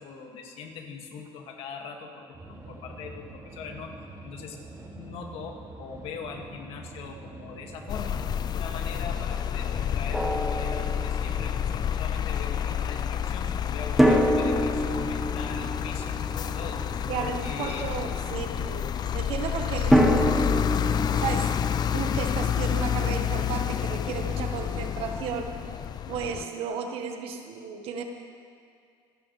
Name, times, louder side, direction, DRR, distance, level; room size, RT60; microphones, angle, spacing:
voice 1, 0.0-3.9 4.2-4.6 4.9-8.2 8.5-18.1, left 5 dB, 65° left, 2 dB, 2.2 m, -41 dB
sound 1, 2.3-17.1, right 2 dB, 30° right, 2.5 m, -45 dB
sound 2, 7.9-26.4, left 9 dB, 40° left, 0.5 m, -29 dB
Drum, 10.1-11.5 14.0-17.0 19.9-22.8, equal, 5° right, 1.5 m, -26 dB
voice 2, 17.1-18.9 19.1-20.8 21.2-21.6 21.9-25.6 26.1-28.0, right 6 dB, 70° right, 5 dB, 1.5 m, -33 dB
27.0 x 11.0 x 3.4 m, 2.3 s
cardioid pair, 100°, 10 cm